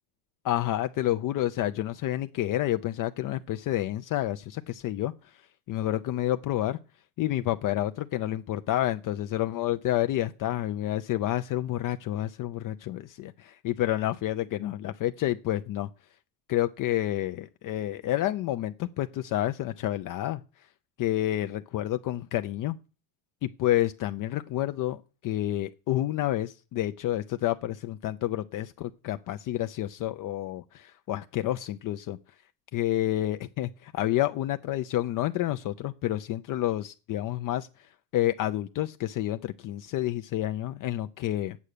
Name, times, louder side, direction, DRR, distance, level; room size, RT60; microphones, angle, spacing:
voice 1, 0.4-5.4 5.7-6.8 7.2-15.9 16.5-20.4 21.0-22.8 23.4-32.2 32.7-37.7 38.1-41.6, left 13 dB, 40° left, 9 dB, 0.6 m, -29 dB
8.8 x 8.3 x 6.6 m, 0.35 s
supercardioid pair, 115°, 48 cm